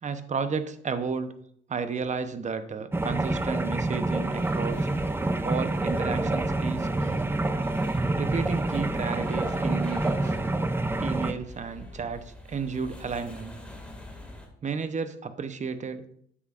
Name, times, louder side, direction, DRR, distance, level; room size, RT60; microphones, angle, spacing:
voice 1, 0.0-1.3 1.7-4.9 5.4-7.2 8.2-10.4 11.0-13.5 14.6-16.0, right 5 dB, 35° right, 10 dB, 0.9 m, -32 dB
sound 1, 2.9-11.3, right 2 dB, 10° right, 0.5 m, -27 dB
sound 2, 4.1-14.5, left 1 dB, 5° left, 2.1 m, -43 dB
9.7 x 8.0 x 2.5 m, 0.67 s
cardioid pair, 90°, 20 cm